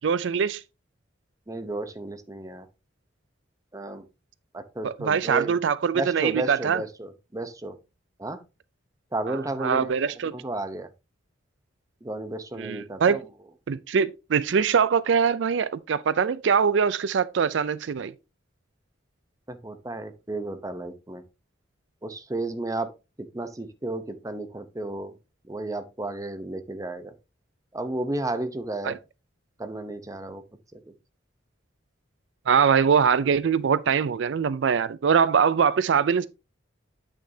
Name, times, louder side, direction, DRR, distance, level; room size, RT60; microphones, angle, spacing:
voice 1, 0.0-0.6 4.8-6.8 9.3-10.3 12.6-13.2 13.7-18.1 28.8-28.9 32.5-36.3, right 6 dB, 70° right, 0.4 m, -23 dB
voice 2, 1.5-2.7 3.7-4.0 4.5-5.6 5.9-7.8 8.2-8.4 9.1-9.9 10.3-10.9 12.0-13.2 19.5-21.2 22.0-22.9 23.3-25.1 25.5-27.1 27.7-29.0 29.6-30.4 30.7-30.8, right 2 dB, 20° right, 0.8 m, -32 dB
8.6 x 6.2 x 2.7 m
head